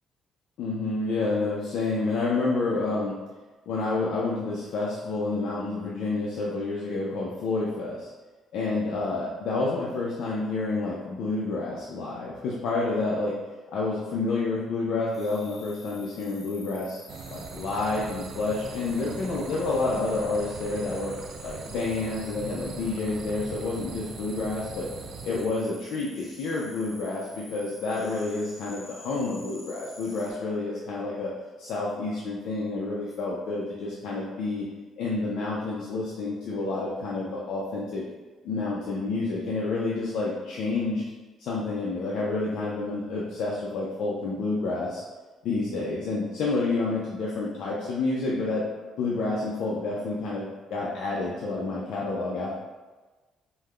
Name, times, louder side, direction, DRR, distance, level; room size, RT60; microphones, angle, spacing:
voice 1, 0.6-3.2 3.7-8.1 8.5-13.3 13.7-17.0 17.3-21.1 21.4-24.9 25.2-31.3 31.6-34.6 35.0-38.0 38.4-41.0 41.4-45.0 45.4-48.6 49.0-52.6, left 3 dB, 70° left, -5 dB, 0.6 m, -29 dB
sound 1, 15.1-30.3, left 1 dB, 50° left, 1.5 m, -48 dB
sound 2, 17.1-25.5, right 5 dB, 65° right, 0.4 m, -41 dB
5.5 x 2.2 x 3.3 m, 1.2 s
cardioid pair, 105°, 0 cm